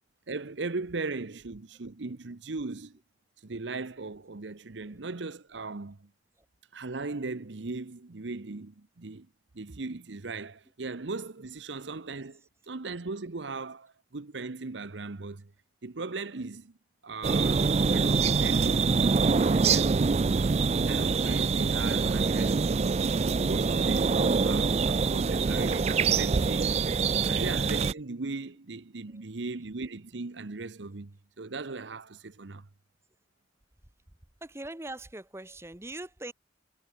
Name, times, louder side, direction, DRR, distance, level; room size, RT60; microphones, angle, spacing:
voice 1, 0.3-3.0 3.4-6.1 6.7-9.3 9.5-15.5 15.8-16.8 17.0-20.4 20.8-22.9 23.2-26.9 27.2-32.7, right 3 dB, 75° right, 0.9 m, -38 dB
sound 1, 17.2-27.9, right 5 dB, 35° right, 0.4 m, -25 dB
voice 2, 34.4-36.3, right 2 dB, 15° right, 1.0 m, -41 dB
head